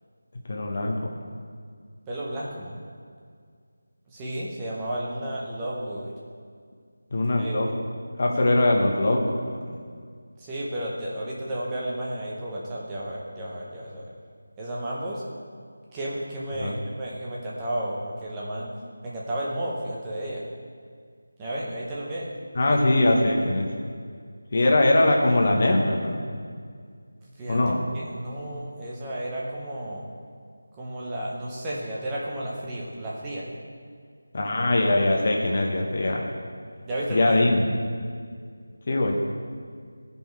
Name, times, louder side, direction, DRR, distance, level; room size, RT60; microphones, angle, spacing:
voice 1, 0.5-1.0 7.1-7.7 8.2-9.8 16.6-16.8 22.5-23.7 24.5-26.2 27.5-27.8 34.3-36.3 37.1-37.7 38.9-39.1, left 2 dB, 30° left, 0 dB, 0.9 m, -22 dB
voice 2, 2.1-2.8 4.1-6.1 7.4-7.6 10.4-14.0 14.6-15.2 15.9-18.7 19.0-20.4 21.4-22.3 22.7-22.8 27.4-27.6 27.9-30.0 30.7-33.5 36.8-37.4, right 1 dB, 10° right, -6 dB, 0.8 m, -32 dB
13.5 x 5.4 x 4.6 m, 2.1 s
figure-of-eight pair, 180°, 0 cm